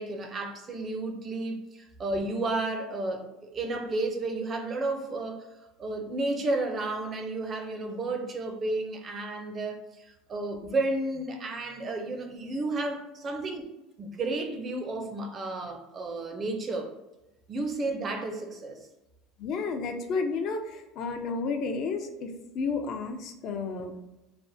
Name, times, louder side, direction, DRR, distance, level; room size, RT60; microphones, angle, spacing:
voice 1, 0.0-5.5 5.8-13.7 14.0-16.9 17.5-18.8, right 2 dB, 30° right, 0.4 m, -32 dB
voice 2, 19.4-23.9, left 4 dB, 50° left, 0.4 m, -32 dB
3.3 x 2.1 x 2.5 m
supercardioid pair, 125°, 0 cm